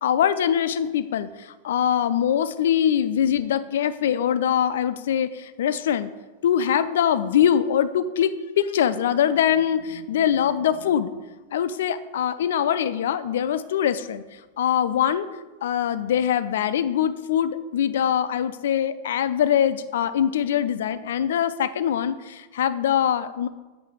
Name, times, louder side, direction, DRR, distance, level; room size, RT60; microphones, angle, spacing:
voice 1, 0.0-6.1 6.4-11.1 11.5-14.2 14.6-15.3 15.6-23.5, left 9 dB, 60° left, 13 dB, 0.3 m, -23 dB
7.2 x 3.4 x 6.1 m, 1.2 s
figure-of-eight pair, 90°, 0 cm